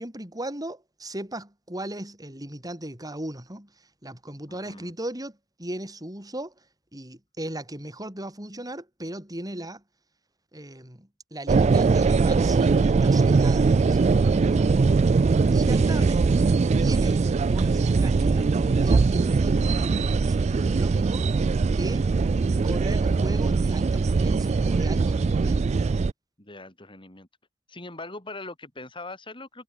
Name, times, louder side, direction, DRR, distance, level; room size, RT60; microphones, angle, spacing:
voice 1, 0.0-6.7 6.9-9.8 10.5-14.9 15.5-16.2 16.8-22.1 22.6-25.8, right 1 dB, 20° right, 6.9 m, -37 dB
voice 2, 4.5-4.9 15.8-16.1 26.4-27.3 27.7-29.6, left 2 dB, 25° left, 6.6 m, -41 dB
sound 1, 11.5-26.1, right 4 dB, 35° right, 0.3 m, -21 dB
head